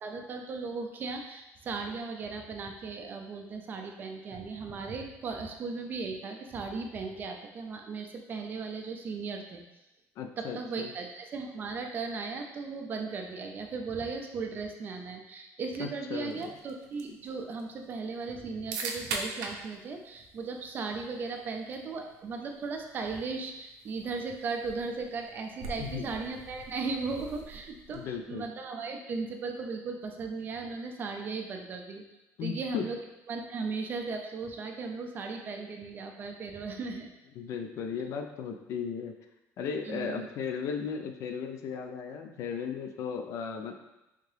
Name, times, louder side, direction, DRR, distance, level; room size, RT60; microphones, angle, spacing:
voice 1, 0.0-9.6 10.4-32.0 32.4-33.0 33.3-37.1 39.9-40.3, right 4 dB, 35° right, 4 dB, 0.4 m, -37 dB
voice 2, 10.2-10.9 15.8-16.6 25.8-26.1 27.9-28.4 32.4-32.9 37.4-39.1 39.6-43.8, left 6 dB, 55° left, 5 dB, 0.4 m, -36 dB
sound 1, 16.3-28.2, right 3 dB, 85° right, 0.5 m, -44 dB
3.5 x 2.7 x 3.2 m, 0.97 s
cardioid pair, 155°, 6 cm